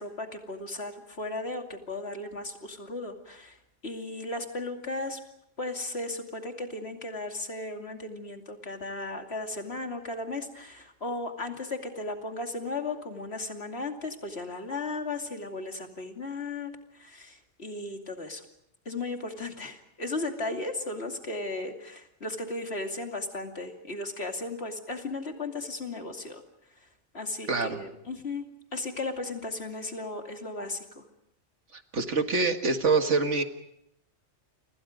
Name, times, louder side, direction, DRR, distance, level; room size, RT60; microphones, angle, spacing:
voice 1, 0.0-3.6 3.8-5.2 5.6-18.4 18.8-26.4 27.1-28.4 28.7-31.0, left 2 dB, 60° left, 4 dB, 2.9 m, -35 dB
voice 2, 27.5-27.8 31.9-33.4, right 4 dB, 75° right, 6 dB, 2.1 m, -25 dB
30.0 x 25.5 x 5.2 m, 0.78 s
omnidirectional pair, 1.2 m